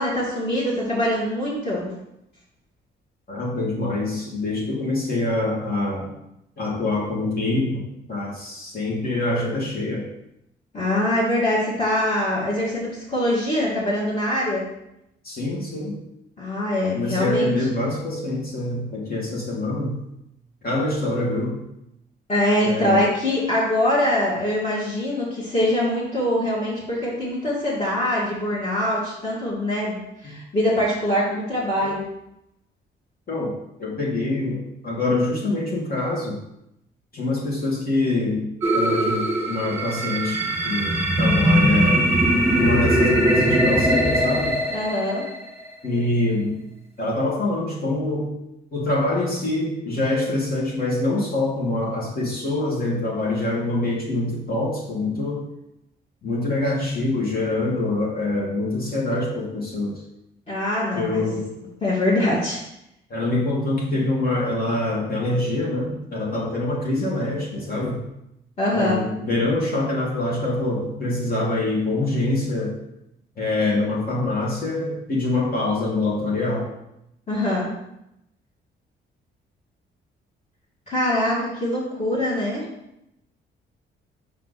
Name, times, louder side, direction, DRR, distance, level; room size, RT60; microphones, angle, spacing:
voice 1, 0.0-1.8 10.7-14.6 16.4-17.5 22.3-30.0 30.2-32.0 44.7-45.2 60.5-61.3 61.8-62.6 68.6-68.9 77.3-77.7 80.9-82.7, left 1 dB, 35° left, -9 dB, 2.3 m, -23 dB
voice 2, 3.3-6.1 6.6-10.1 15.2-16.0 16.9-20.0 20.6-21.6 22.6-23.0 31.8-31.9 33.3-36.4 37.1-42.1 42.5-44.6 45.8-46.6 47.0-48.3 48.7-55.5 56.2-60.0 60.9-61.5 63.1-68.0 68.7-72.7 73.4-76.7, left 2 dB, 50° left, -4 dB, 2.4 m, -25 dB
sound 1, 38.6-45.7, right 1 dB, 10° right, 1.4 m, -20 dB
5.9 x 4.6 x 4.2 m, 0.83 s
cardioid pair, 90°, 20 cm